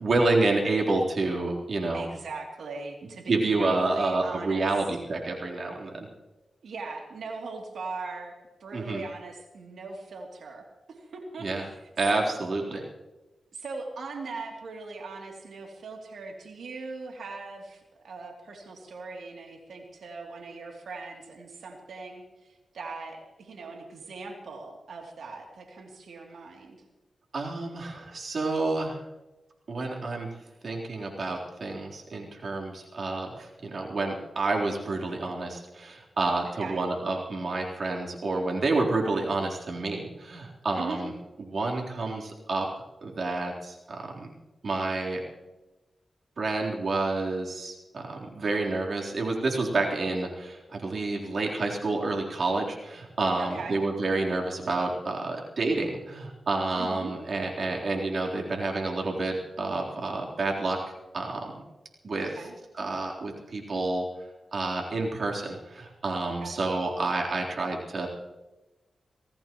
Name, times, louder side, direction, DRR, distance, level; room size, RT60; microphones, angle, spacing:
voice 1, 0.0-2.1 3.3-6.1 8.7-9.0 11.4-11.7 12.0-12.8 27.3-29.0 29.7-30.3 30.6-41.1 41.5-42.7 43.0-44.3 44.6-45.2 46.4-60.8 61.1-61.6 62.0-62.3 62.8-64.0 64.5-68.1, right 2 dB, 60° right, -1 dB, 3.7 m, -29 dB
voice 2, 1.9-4.7 6.6-12.4 13.5-26.8 36.4-36.8 40.7-41.0 53.4-53.8 56.8-57.1 62.2-62.5 66.4-66.7, right 3 dB, 85° right, 1 dB, 2.9 m, -40 dB
26.0 x 16.5 x 3.1 m, 1.1 s
cardioid pair, 60°, 0 cm